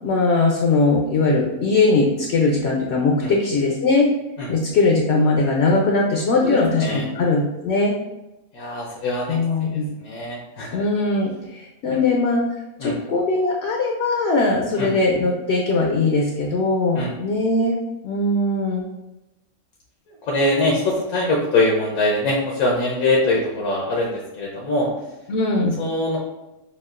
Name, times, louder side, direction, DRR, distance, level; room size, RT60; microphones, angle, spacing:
voice 1, 0.0-4.1 4.5-7.9 9.3-9.9 10.7-12.4 12.8-17.7 18.0-18.9 25.3-25.8, left 3 dB, 60° left, 0 dB, 0.7 m, -20 dB
voice 2, 6.4-7.1 8.5-10.8 11.9-12.0 12.8-13.0 14.8-14.9 16.9-17.1 20.3-24.9 25.8-26.2, left 2 dB, 85° left, -2 dB, 1.2 m, -23 dB
6.8 x 2.3 x 2.4 m, 0.98 s
omnidirectional pair, 1.5 m